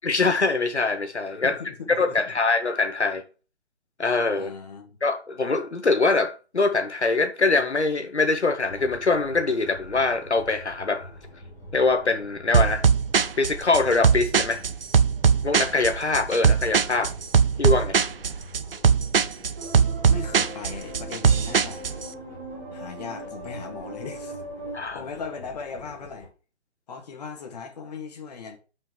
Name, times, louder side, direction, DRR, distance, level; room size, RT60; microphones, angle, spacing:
voice 1, 0.0-1.6 2.0-3.2 4.0-4.5 5.0-11.1 11.7-12.8 13.4-14.6 15.4-17.1 17.6-18.0 24.7-25.0, left 3 dB, 80° left, 1.0 m, -23 dB
voice 2, 1.4-2.2 4.4-5.0 20.1-21.8 22.7-24.4 24.8-26.3 26.9-28.6, left 5 dB, 35° left, 2.1 m, -38 dB
sound 1, 8.6-26.3, equal, 5° left, 3.1 m, -46 dB
sound 2, 12.5-22.1, right 6 dB, 55° right, 0.6 m, -21 dB
sound 3, 19.6-24.8, right 1 dB, 10° right, 0.6 m, -39 dB
5.7 x 5.6 x 6.1 m
figure-of-eight pair, 140°, 34 cm